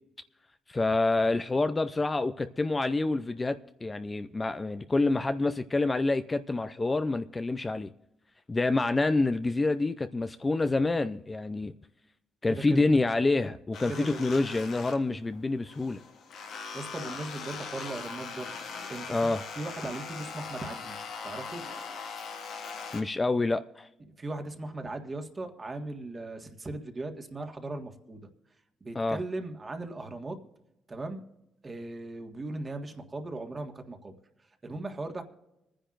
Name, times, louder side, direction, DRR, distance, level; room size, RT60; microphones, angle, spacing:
voice 1, 0.7-7.9 8.5-11.7 12.4-16.0 19.1-19.4 22.9-23.9 28.9-29.2, left 2 dB, 25° left, 0.5 m, -27 dB
voice 2, 12.5-12.9 13.9-14.2 16.7-18.5 18.9-19.3 19.6-21.0 21.2-21.6 24.2-28.3 28.8-30.4 30.9-31.2 31.6-34.1 34.6-35.2, right 2 dB, 30° right, 1.6 m, -38 dB
sound 1, 13.7-15.4 15.7-23.0, left 5 dB, 80° left, 1.8 m, -40 dB
26.0 x 10.0 x 2.5 m
cardioid pair, 85°, 0 cm